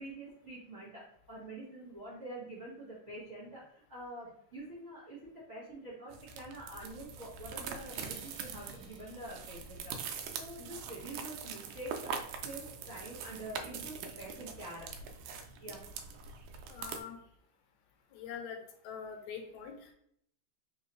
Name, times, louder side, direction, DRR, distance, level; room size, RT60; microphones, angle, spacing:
voice 1, 0.0-9.9 10.3-14.9 15.6-16.1, right 1 dB, 75° right, -10 dB, 0.6 m, -46 dB
sound 1, 6.1-17.0, right 6 dB, 90° right, 2.0 m, -43 dB
sound 2, 7.9-11.2, right 2 dB, 55° right, 1.4 m, -61 dB
voice 2, 16.7-17.2 18.1-18.6 18.8-19.7, left 7 dB, 80° left, 4 dB, 1.9 m, -43 dB
4.4 x 3.2 x 3.0 m, 0.69 s
omnidirectional pair, 3.4 m